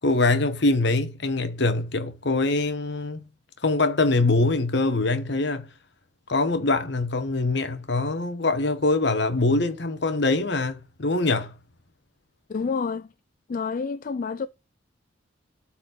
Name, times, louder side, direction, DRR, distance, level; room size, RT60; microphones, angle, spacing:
voice 1, 0.0-3.2 3.6-5.7 6.3-11.5, left 2 dB, 65° left, 1.3 m, -23 dB
voice 2, 12.5-13.1 13.5-14.5, left 5 dB, 45° left, 0.4 m, -28 dB
12.5 x 4.4 x 4.0 m
head